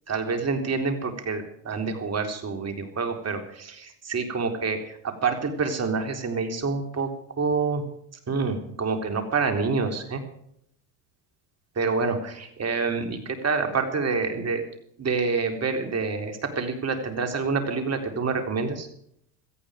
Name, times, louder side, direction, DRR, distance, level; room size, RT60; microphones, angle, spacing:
voice 1, 0.1-7.1 7.4-7.8 8.3-10.2 11.8-14.6 15.0-18.9, right 4 dB, 35° right, 5 dB, 3.9 m, -27 dB
17.5 x 14.0 x 5.1 m, 0.71 s
hypercardioid pair, 90°, 46 cm